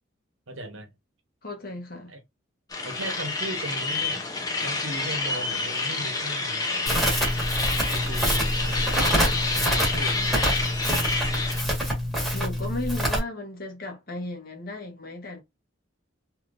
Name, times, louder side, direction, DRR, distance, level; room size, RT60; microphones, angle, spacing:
voice 1, 0.5-0.9 2.1-2.2 2.8-4.3 4.6-7.4 7.9-9.3 9.6-10.6, right 1 dB, 75° right, 1.0 m, -38 dB
voice 2, 1.4-2.2 12.3-15.4, left 2 dB, 45° left, 1.0 m, -35 dB
sound 1, 2.7-11.6, left 3 dB, 20° left, 0.6 m, -28 dB
Crackle, 6.9-13.2, equal, ahead, 1.5 m, -26 dB
3.3 x 2.8 x 2.5 m
head